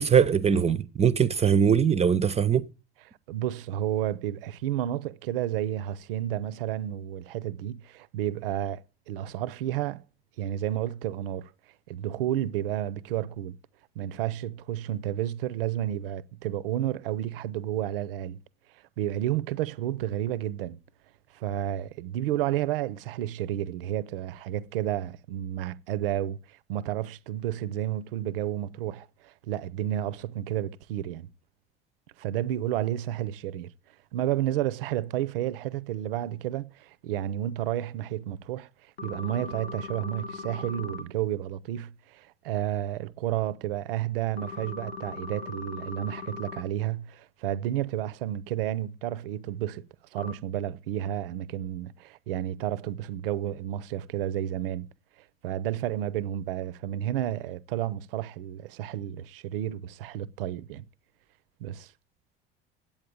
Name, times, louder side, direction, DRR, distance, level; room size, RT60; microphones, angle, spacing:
voice 1, 0.0-2.7, right 7 dB, 20° right, 0.7 m, -22 dB
voice 2, 3.3-10.0 10.4-11.5 11.9-13.6 14.0-18.4 19.0-20.8 21.3-31.3 32.2-33.7 34.1-38.7 39.0-49.8 50.1-54.9 55.4-60.9 61.6-61.9, right 12 dB, 65° right, 0.7 m, -31 dB
sound 1, 39.0-41.0 44.4-46.6 50.2-50.3, left 4 dB, 80° left, 1.1 m, -39 dB
8.8 x 8.8 x 8.9 m
figure-of-eight pair, 65°, 31 cm